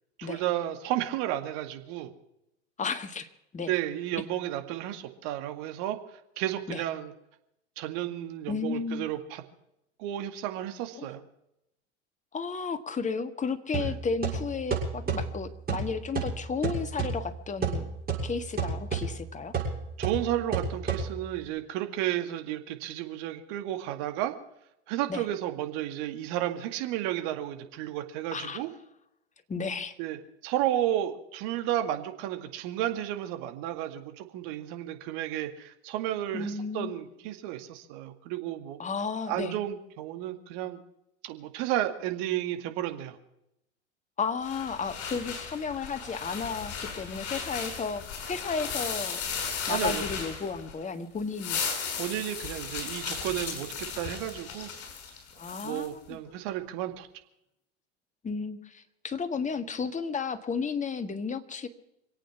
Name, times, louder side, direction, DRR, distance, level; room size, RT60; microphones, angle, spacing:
voice 1, 0.2-2.1 3.7-7.1 7.8-9.4 10.0-11.2 13.7-13.9 20.0-24.3 24.9-28.7 30.0-30.2 30.4-38.8 39.3-40.8 41.2-43.2 49.7-50.0 52.0-54.7 55.6-57.1, right 13 dB, 55° right, 7 dB, 2.2 m, -32 dB
voice 2, 2.8-3.7 6.7-6.8 8.5-9.1 11.0-11.1 12.3-17.9 18.2-19.5 25.1-25.2 28.3-28.6 29.5-30.0 36.3-36.9 38.8-39.6 44.2-49.2 49.7-51.6 55.4-56.2 58.2-61.7, left 5 dB, 20° left, 9 dB, 1.7 m, -33 dB
sound 1, 13.7-21.5, right 5 dB, 25° right, 6.9 m, -32 dB
sound 2, 44.4-50.8 51.2-55.9, left 6 dB, 40° left, 6.0 m, -36 dB
26.5 x 8.8 x 5.9 m, 0.83 s
hypercardioid pair, 85°, 35 cm